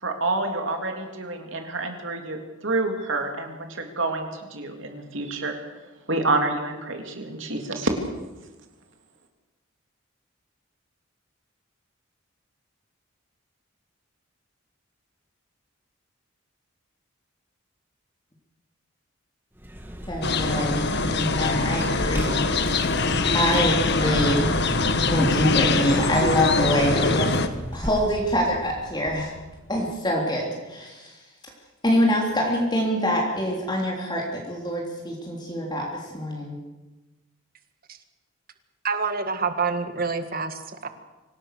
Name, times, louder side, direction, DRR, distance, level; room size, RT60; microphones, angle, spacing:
voice 1, 0.0-5.6 6.1-7.9, right 2 dB, 65° right, 4 dB, 3.3 m, -28 dB
Vehicle, 19.6-29.9, equal, 10° right, 1.9 m, -34 dB
voice 2, 20.1-22.4 22.7-24.5 25.1-27.4 27.7-29.3 29.7-31.2 31.8-36.6, equal, 20° left, -1 dB, 3.5 m, -25 dB
sound 1, 20.2-27.5, left 3 dB, 55° left, 1.4 m, -23 dB
voice 3, 38.8-40.9, right 5 dB, 45° right, 9 dB, 1.8 m, -27 dB
25.0 x 18.0 x 6.8 m, 1.1 s
head